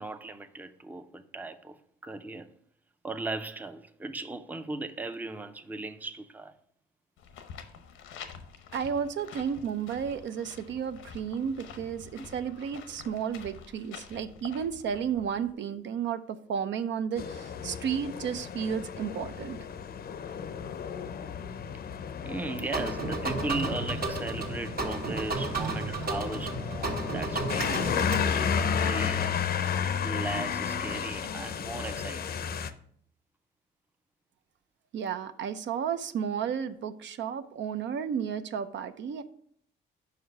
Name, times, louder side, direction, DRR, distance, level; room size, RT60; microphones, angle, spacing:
voice 1, 0.0-1.8 2.0-2.5 3.0-6.5 11.5-11.6 12.2-12.3 22.2-27.7 28.3-29.6 30.0-32.4, right 2 dB, 10° right, 0.5 m, -37 dB
sound 1, 7.2-15.5, left 7 dB, 90° left, 0.8 m, -48 dB
voice 2, 8.7-16.2 16.5-19.6 34.9-39.2, right 7 dB, 65° right, 0.6 m, -32 dB
sound 2, 17.2-32.7, left 7 dB, 50° left, 0.6 m, -33 dB
sound 3, 22.7-28.2, right 3 dB, 50° right, 1.5 m, -33 dB
5.5 x 5.0 x 5.7 m
cardioid pair, 90°, 20 cm